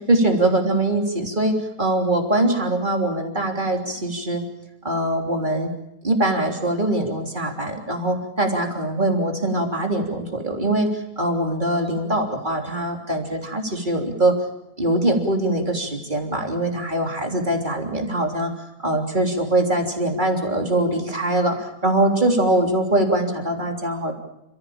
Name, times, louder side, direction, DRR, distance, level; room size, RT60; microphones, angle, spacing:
voice 1, 0.0-4.4 4.8-5.7 6.0-14.3 14.8-18.5 18.8-24.1, right 1 dB, 25° right, 2 dB, 3.5 m, -22 dB
29.5 x 15.5 x 8.8 m, 0.85 s
omnidirectional pair, 1.9 m